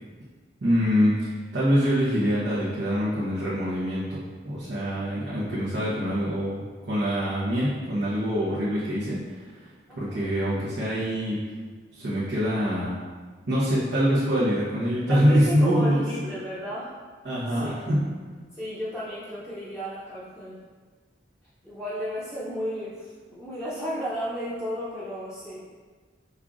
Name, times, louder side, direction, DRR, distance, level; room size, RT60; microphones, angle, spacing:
voice 1, 0.6-9.2 10.0-11.4 11.9-13.0 13.5-16.1 17.2-18.0, equal, 85° right, -10 dB, 1.0 m, -24 dB
voice 2, 9.9-10.3 15.0-17.0 17.5-17.7 18.5-20.6 21.6-25.7, equal, 5° right, -12 dB, 0.6 m, -34 dB
5.5 x 3.6 x 2.5 m, 1.5 s
head